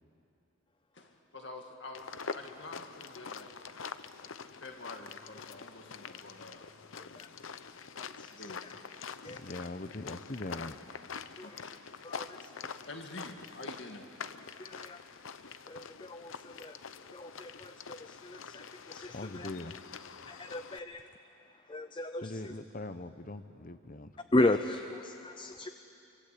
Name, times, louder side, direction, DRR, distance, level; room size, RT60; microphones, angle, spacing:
voice 1, 0.9-2.1 2.3-3.6 4.6-6.7 7.0-7.4 8.3-9.4 11.4-11.7 12.2-12.3 12.9-14.1 15.1-15.2, left 2 dB, 60° left, 3 dB, 2.3 m, -48 dB
sound 1, 1.9-20.8, left 5 dB, 75° left, 0.8 m, -45 dB
voice 2, 9.2-10.7 19.1-19.8 22.2-24.1, left 2 dB, 40° left, 11 dB, 0.9 m, -41 dB
voice 3, 12.0-12.4 14.6-15.0 15.7-16.7 17.1-19.5 20.3-21.0 21.7-22.3 24.3-25.7, left 2 dB, 25° left, 9 dB, 0.6 m, -34 dB
25.5 x 24.0 x 8.6 m, 2.8 s
head